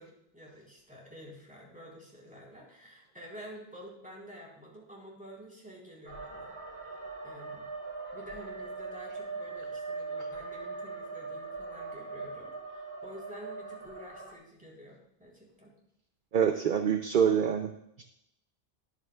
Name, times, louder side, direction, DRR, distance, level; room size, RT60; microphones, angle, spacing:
voice 1, 0.0-7.0 7.2-7.7 8.1-15.7, equal, 10° right, -3 dB, 4.1 m, -49 dB
sound 1, 6.1-14.3, right 3 dB, 90° right, 2.2 m, -41 dB
voice 2, 16.3-17.7, right 7 dB, 55° right, 6 dB, 0.8 m, -25 dB
22.0 x 8.6 x 2.4 m, 0.78 s
omnidirectional pair, 1.0 m